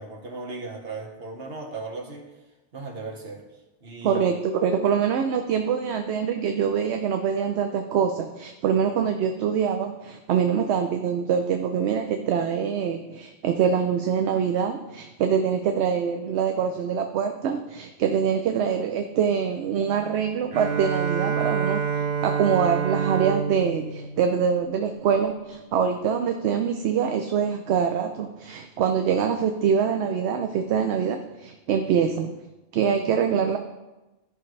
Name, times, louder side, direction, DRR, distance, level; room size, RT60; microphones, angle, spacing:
voice 1, 0.0-2.3 2.7-3.4 3.8-4.2, right 3 dB, 60° right, 0 dB, 1.5 m, -36 dB
voice 2, 4.0-32.4 32.7-33.6, right 7 dB, 75° right, 6 dB, 0.9 m, -24 dB
Bowed string instrument, 20.5-25.2, right 6 dB, 40° right, 0.6 m, -28 dB
13.0 x 5.5 x 3.2 m, 1.1 s
omnidirectional pair, 1.1 m